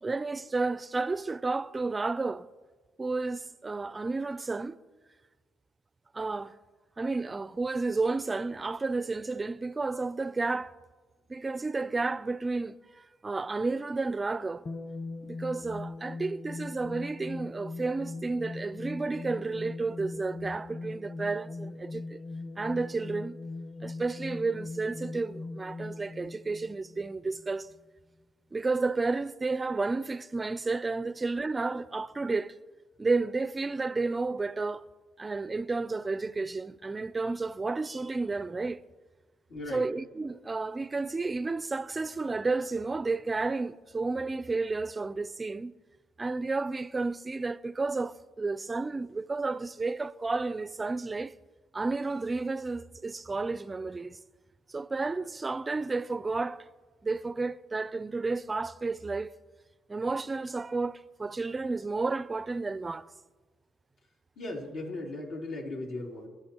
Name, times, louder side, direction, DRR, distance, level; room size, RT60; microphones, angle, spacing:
voice 1, 0.0-2.5 3.0-4.8 6.1-6.5 7.0-10.7 11.3-14.6 15.2-22.2 22.6-23.4 23.8-27.7 28.5-32.6 33.0-34.8 35.2-38.8 39.7-45.7 46.2-51.3 51.7-54.2 54.7-56.7 57.0-59.3 59.9-63.1, right 3 dB, 25° right, 0.4 m, -31 dB
sound 1, 14.6-27.5, left 3 dB, 35° left, 1.2 m, -40 dB
voice 2, 39.5-39.8 64.4-66.3, left 2 dB, 70° left, 2.9 m, -37 dB
26.0 x 12.0 x 2.9 m
cardioid pair, 95°, 0 cm